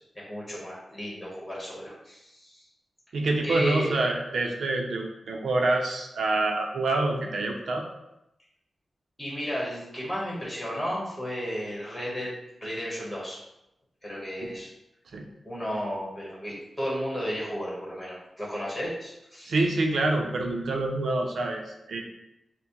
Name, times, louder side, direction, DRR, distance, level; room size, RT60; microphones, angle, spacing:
voice 1, 0.0-2.6 3.4-3.9 9.2-12.3 12.6-13.4 14.0-14.7 15.4-19.5, equal, 10° left, -5 dB, 1.1 m, -33 dB
voice 2, 3.1-7.8 14.4-14.5 15.1-15.3 19.5-22.0, right 2 dB, 80° right, 2 dB, 0.6 m, -26 dB
6.0 x 2.1 x 3.0 m, 0.87 s
wide cardioid pair, 175°, 0 cm